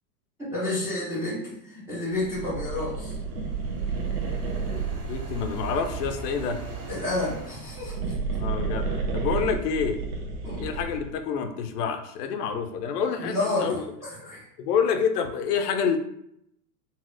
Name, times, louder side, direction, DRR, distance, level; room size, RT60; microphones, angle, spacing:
voice 1, 0.5-3.2 6.9-8.4 10.4-10.6 13.2-13.8 14.2-14.4, left 2 dB, 5° right, -10 dB, 0.3 m, -30 dB
sound 1, 2.1-6.6 7.5-11.2, right 4 dB, 65° right, 0.9 m, -31 dB
sound 2, 3.0-7.7, right 4 dB, 45° right, 1.1 m, -40 dB
voice 2, 5.1-6.6 8.4-8.9 9.1-10.0 10.6-13.8 14.6-16.0, left 6 dB, 75° left, 7 dB, 0.6 m, -27 dB
4.1 x 2.0 x 2.5 m, 0.76 s
hypercardioid pair, 115°, 49 cm